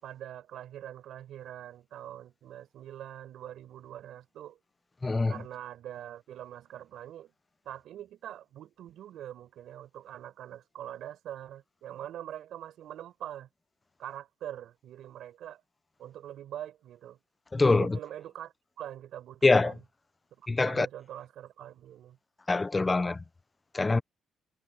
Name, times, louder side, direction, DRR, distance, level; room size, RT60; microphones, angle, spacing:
voice 1, 0.0-4.6 5.3-7.3 7.6-13.5 14.0-15.6 16.0-17.2 17.7-19.8 20.4-22.2, right 11 dB, 75° right, 5.5 m, -43 dB
voice 2, 5.0-5.3 17.5-18.0 19.4-19.7 20.5-20.9 22.5-23.2 23.7-24.0, left 3 dB, 20° left, 0.8 m, -24 dB
cardioid pair, 90°, 0 cm